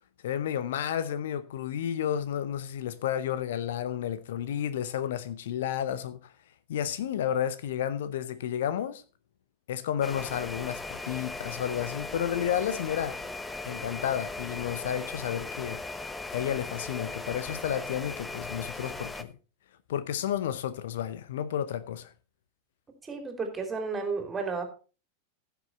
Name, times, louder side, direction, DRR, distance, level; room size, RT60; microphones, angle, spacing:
voice 1, 0.2-6.3 6.7-9.0 9.7-13.2 13.6-15.8 16.3-19.3 19.9-22.1, left 10 dB, 60° left, 0.7 m, -31 dB
sound 1, 10.0-19.2, left 3 dB, 10° left, 0.9 m, -38 dB
voice 2, 23.1-24.6, right 4 dB, 15° right, 3.1 m, -32 dB
15.5 x 6.9 x 4.2 m
figure-of-eight pair, 90°, 0 cm